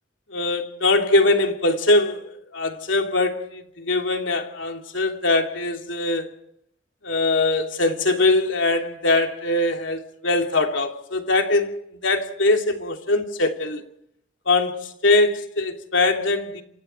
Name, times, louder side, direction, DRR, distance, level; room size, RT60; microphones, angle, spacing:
voice 1, 0.3-6.3 7.0-11.7 12.0-13.8 14.5-16.6, left 2 dB, 75° left, 3.1 m, -22 dB
28.0 x 27.0 x 4.6 m
head